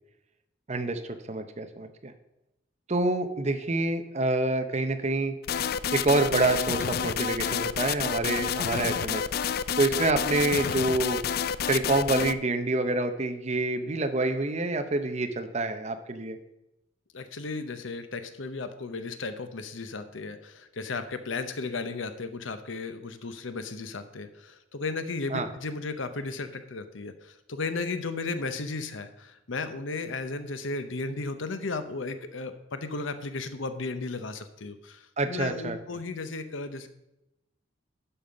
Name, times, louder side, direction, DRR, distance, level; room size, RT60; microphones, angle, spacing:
voice 1, 0.7-2.1 2.9-5.3 5.9-9.2 9.8-11.2 11.7-16.4 25.3-25.5 35.2-35.8, right 2 dB, 35° right, 7 dB, 0.8 m, -27 dB
sound 1, 5.4-12.3, left 7 dB, 50° left, 0.3 m, -29 dB
voice 2, 17.1-36.9, left 3 dB, 85° left, 10 dB, 0.8 m, -35 dB
11.5 x 5.5 x 5.2 m, 0.88 s
head